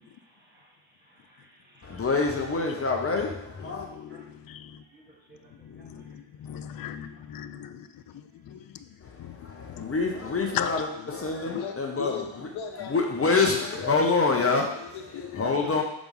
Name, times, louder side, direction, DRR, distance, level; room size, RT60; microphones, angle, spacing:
voice 1, 0.0-2.1 4.1-4.3 4.9-6.2 6.5-7.2 9.6-9.8 15.5-15.7, equal, 20° right, 1.8 m, -57 dB
voice 2, 1.8-3.9 9.3-12.1 12.9-14.9 15.4-15.8, left 4 dB, 30° left, 0.8 m, -26 dB
voice 3, 3.6-4.8 5.6-7.9 9.2-9.9 10.5-11.1 15.3-15.8, left 10 dB, 50° left, 0.5 m, -38 dB
voice 4, 11.4-13.2 13.6-14.0 14.4-15.5, left 7 dB, 90° left, 1.0 m, -38 dB
6.1 x 3.5 x 5.4 m
cardioid pair, 120°, 46 cm